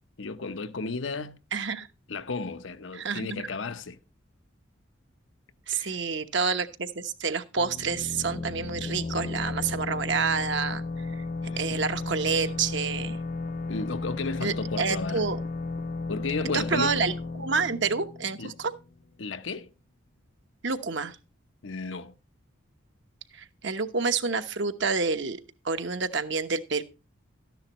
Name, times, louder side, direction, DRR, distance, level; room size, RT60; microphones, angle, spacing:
voice 1, 0.2-1.4 2.1-4.0 5.7-6.0 11.4-11.8 13.7-15.3 16.1-17.0 18.4-18.5 19.2-19.7 21.6-22.1, left 4 dB, 70° left, 0.8 m, -34 dB
voice 2, 1.5-1.9 2.9-3.4 5.7-11.2 11.6-13.2 14.4-15.4 16.5-18.7 20.6-21.2 23.3-25.4 25.6-26.8, right 5 dB, 60° right, 1.0 m, -28 dB
sound 1, 7.6-19.1, left 3 dB, 40° left, 0.4 m, -34 dB
13.0 x 10.5 x 3.0 m
head